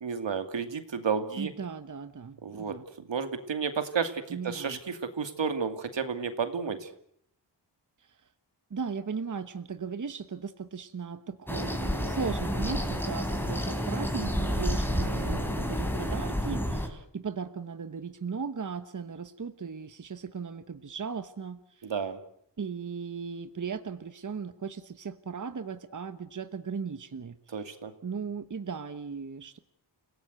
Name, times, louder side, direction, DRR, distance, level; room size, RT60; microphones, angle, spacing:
voice 1, 0.0-1.5 2.4-2.7 3.1-6.9 15.0-15.4 21.8-22.2 27.5-27.9, right 6 dB, 80° right, 8 dB, 2.5 m, -32 dB
voice 2, 1.4-2.8 4.3-4.8 8.7-21.8 22.6-27.6 28.0-29.6, right 5 dB, 45° right, 11 dB, 1.2 m, -37 dB
sound 1, 11.5-16.9, equal, 5° left, 3.8 m, -30 dB
29.5 x 17.5 x 8.0 m, 0.70 s
wide cardioid pair, 115°, 43 cm